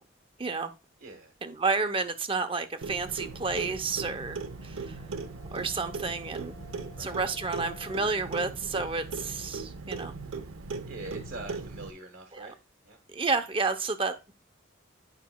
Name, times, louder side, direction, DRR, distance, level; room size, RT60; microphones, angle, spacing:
voice 1, 0.4-0.7 1.4-5.0 5.5-6.6 7.0-10.1 12.3-12.5 13.1-14.3, right 4 dB, 25° right, 0.7 m, -31 dB
voice 2, 1.0-1.3 7.0-7.2 10.8-12.6 12.9-13.0, right 2 dB, 60° right, 1.1 m, -43 dB
Clock, 2.8-11.9, right 4 dB, 90° right, 0.8 m, -39 dB
Divine drone, 3.0-8.2, left 5 dB, 45° left, 1.0 m, -54 dB
11.5 x 5.3 x 2.2 m
head